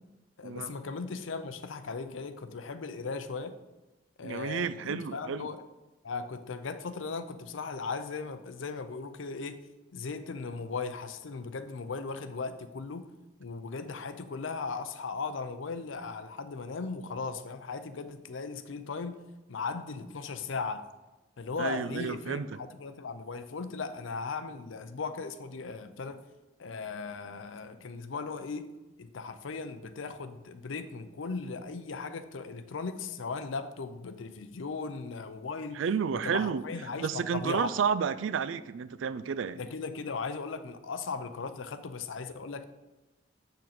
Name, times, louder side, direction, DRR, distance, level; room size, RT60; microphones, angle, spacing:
voice 1, 0.4-3.6 4.2-5.6 6.0-9.6 9.9-13.1 13.4-19.2 19.5-20.8 21.4-26.2 26.6-28.7 29.0-35.8 36.1-37.7 39.6-42.6, left 4 dB, 85° left, 11 dB, 0.6 m, -37 dB
voice 2, 4.2-5.5 21.6-22.6 35.7-36.6 37.0-39.6, right 6 dB, 80° right, 15 dB, 0.4 m, -31 dB
6.5 x 6.4 x 4.2 m, 1.1 s
head